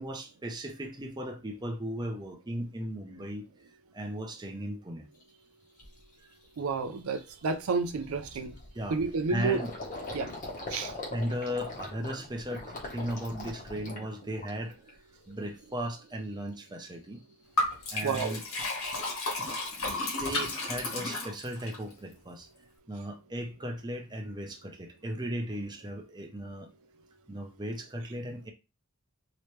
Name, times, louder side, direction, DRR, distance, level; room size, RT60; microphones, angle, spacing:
voice 1, 0.0-3.4 3.9-5.0 8.7-9.0 9.3-9.7 11.1-12.6 12.9-14.7 15.3-17.2 17.9-18.4 19.4-22.5 22.9-26.7 27.3-28.5, equal, 20° right, 0.6 m, -36 dB
Gurgling, 5.2-5.3 5.8-6.0 6.4-6.6 6.8-14.9 15.2-15.9, left 2 dB, 35° left, 1.1 m, -42 dB
voice 2, 6.6-8.6 8.9-9.6 10.1-10.3 10.7-10.9 18.0-18.4, right 4 dB, 75° right, 0.5 m, -30 dB
Liquid, 17.6-21.8, left 2 dB, 70° left, 1.4 m, -32 dB
3.1 x 3.0 x 3.1 m
head